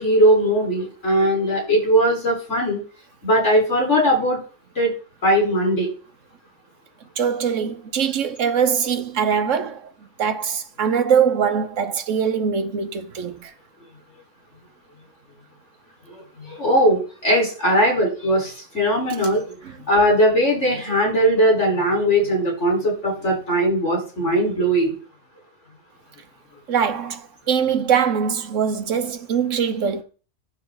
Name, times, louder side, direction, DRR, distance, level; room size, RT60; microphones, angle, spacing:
voice 1, 0.0-2.8 3.2-4.4 4.8-4.9 5.2-5.9 16.1-19.6 19.9-24.9, equal, 70° left, 4.9 m, -19 dB
voice 2, 7.2-9.9 10.2-13.5 19.6-19.7 26.7-30.0, right 7 dB, 90° right, 1.4 m, -22 dB
11.0 x 7.3 x 4.0 m
omnidirectional pair, 1.3 m